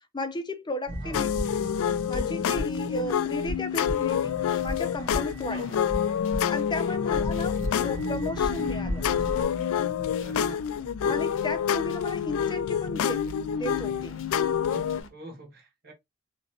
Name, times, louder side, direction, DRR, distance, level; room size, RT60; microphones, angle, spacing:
voice 1, 0.1-1.3 2.1-5.8 6.5-9.1 11.0-14.2, left 1 dB, 20° left, 0.6 m, -34 dB
sound 1, 0.9-9.5, equal, 20° right, 1.5 m, -36 dB
sound 2, 1.1-15.0, left 8 dB, 80° left, 0.3 m, -28 dB
sound 3, 3.8-15.1, left 3 dB, 60° left, 0.7 m, -45 dB
voice 2, 5.5-5.8 6.9-7.4 10.2-10.6 14.7-15.9, right 1 dB, 45° right, 1.5 m, -46 dB
4.1 x 2.9 x 2.8 m
head